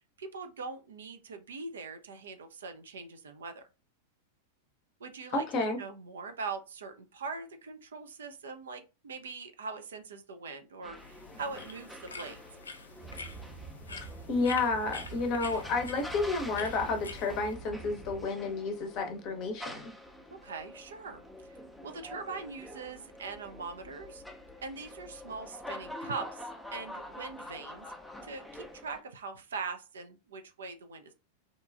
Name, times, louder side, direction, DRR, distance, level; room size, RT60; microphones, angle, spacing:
voice 1, 0.2-3.6 5.0-12.4 20.3-21.6 21.8-24.2 24.6-27.9 28.2-31.1, right 4 dB, 70° right, 0.4 m, -42 dB
voice 2, 5.3-5.8 14.3-19.9, left 3 dB, 40° left, 0.6 m, -31 dB
sound 1, 10.8-29.0, left 1 dB, ahead, 0.5 m, -47 dB
sound 2, 11.0-17.5, left 4 dB, 75° left, 0.3 m, -46 dB
sound 3, 13.0-18.3, right 4 dB, 45° right, 0.8 m, -47 dB
2.8 x 2.2 x 2.4 m
figure-of-eight pair, 95°, 0 cm